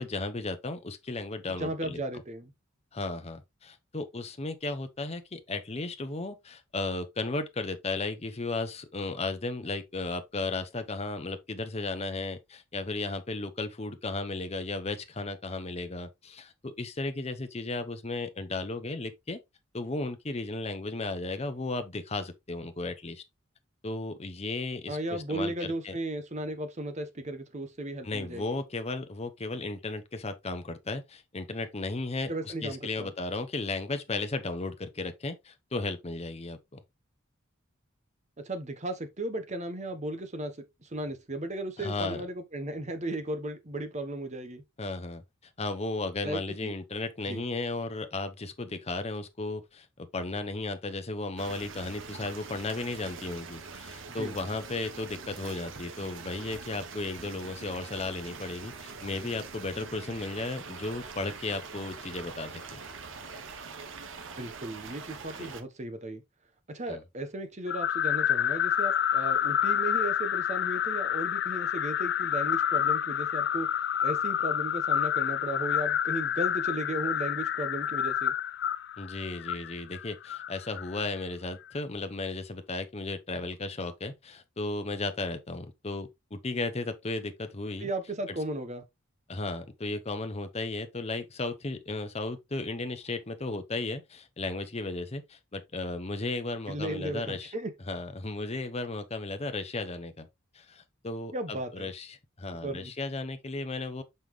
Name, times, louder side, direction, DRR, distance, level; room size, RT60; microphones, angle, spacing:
voice 1, 0.0-2.0 2.9-19.4 19.7-23.2 23.8-25.9 28.0-36.8 41.8-42.2 44.8-45.2 45.6-62.8 65.4-65.5 66.9-67.0 79.0-87.9 89.3-97.5 97.9-100.3 100.5-104.0, left 2 dB, 30° left, 0.8 m, -35 dB
voice 2, 1.6-2.5 24.9-28.6 32.3-33.1 38.4-40.5 40.8-44.6 46.2-46.7 47.3-47.4 54.1-54.3 64.4-66.2 66.7-73.7 74.0-78.3 87.8-88.8 96.7-97.7 101.3-101.9 102.6-102.9, right 1 dB, 35° right, 1.1 m, -35 dB
sound 1, 51.4-65.6, right 5 dB, 65° right, 1.0 m, -44 dB
sound 2, 67.7-81.0, left 10 dB, 55° left, 0.4 m, -28 dB
5.6 x 5.4 x 3.2 m
head